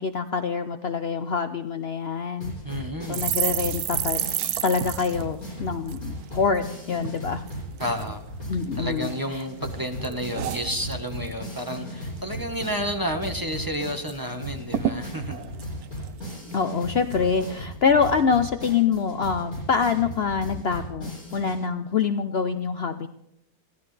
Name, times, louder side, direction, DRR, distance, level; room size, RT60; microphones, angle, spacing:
voice 1, 0.0-2.6 3.1-4.2 4.6-7.5 8.5-9.4 16.5-23.1, left 6 dB, 55° left, 9 dB, 0.8 m, -25 dB
sound 1, 2.4-21.6, equal, 75° left, 8.0 m, -37 dB
voice 2, 2.6-3.4 7.8-8.2 8.8-15.4, equal, 15° right, 4 dB, 1.3 m, -31 dB
sound 2, 3.1-6.7 7.0-7.2 7.5-8.1 8.6-9.4 9.7-11.4 11.7-11.9 12.2-12.8 13.1-13.2 13.5-14.2 14.4-14.5 14.7-16.6 17.1-17.4, right 11 dB, 90° right, 1.3 m, -31 dB
23.5 x 16.5 x 3.4 m, 0.82 s
omnidirectional pair, 1.6 m